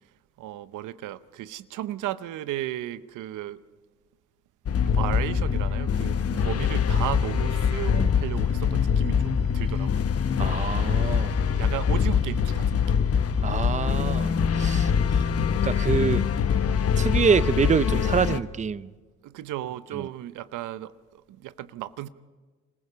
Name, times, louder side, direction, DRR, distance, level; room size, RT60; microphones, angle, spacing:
voice 1, 0.4-3.6 4.9-10.1 11.3-13.0 19.2-22.1, right 13 dB, 85° right, 0.8 m, -35 dB
sound 1, 4.7-18.4, left 7 dB, 50° left, 1.1 m, -24 dB
voice 2, 10.4-11.3 13.4-15.2 15.6-16.3 17.0-18.9, right 6 dB, 25° right, 0.6 m, -26 dB
26.5 x 14.5 x 6.8 m
cardioid pair, 90°, 30 cm